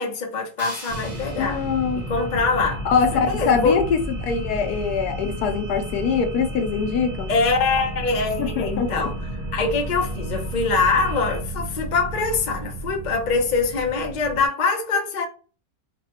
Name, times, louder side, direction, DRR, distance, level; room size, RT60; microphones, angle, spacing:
voice 1, 0.0-1.6 1.9-2.9 3.1-3.8 7.3-9.1 9.5-15.3, left 4 dB, 50° left, 0.5 m, -23 dB
sound 1, 0.6-3.6, right 1 dB, 15° right, 0.9 m, -43 dB
sound 2, 0.6-11.4, right 3 dB, 45° right, 1.0 m, -44 dB
sound 3, 0.9-14.5, right 1 dB, 70° right, 0.4 m, -32 dB
voice 2, 1.4-2.0 2.8-7.3 8.4-9.1, left 6 dB, 70° left, 1.0 m, -23 dB
4.0 x 2.2 x 2.8 m
omnidirectional pair, 1.9 m